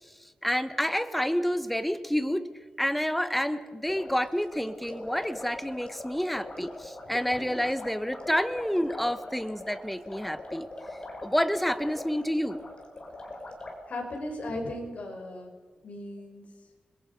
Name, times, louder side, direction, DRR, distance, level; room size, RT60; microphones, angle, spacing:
voice 1, 0.4-2.5 2.8-10.7 11.2-12.6, equal, 5° left, 11 dB, 1.1 m, -29 dB
sound 1, 3.8-13.8, left 2 dB, 35° left, 4.4 m, -42 dB
voice 2, 13.9-15.5 15.8-16.5, left 1 dB, 55° left, 1 dB, 5.3 m, -36 dB
28.5 x 21.5 x 5.4 m, 1.5 s
wide cardioid pair, 130°, 3 cm